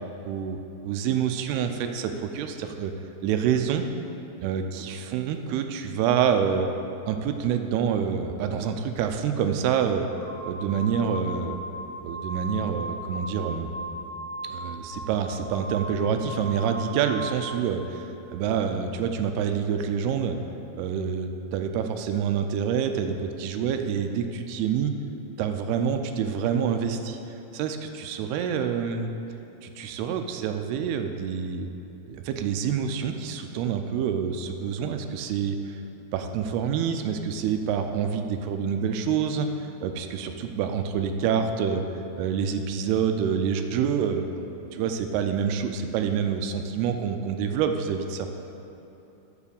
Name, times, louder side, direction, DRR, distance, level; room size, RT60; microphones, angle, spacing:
voice 1, 0.2-0.6 0.8-2.9 3.2-3.9 4.4-6.7 7.1-10.1 10.4-11.6 12.0-13.7 14.4-20.4 20.7-24.9 25.4-27.2 27.5-29.1 29.6-31.7 32.1-35.8 36.1-39.5 39.8-41.8 42.2-44.2 44.6-48.3, right 7 dB, 80° right, 6 dB, 2.5 m, -27 dB
sound 1, 9.9-17.7, right 1 dB, 50° right, 3.3 m, -38 dB
7.2 x 6.5 x 6.9 m, 3.0 s
omnidirectional pair, 4.7 m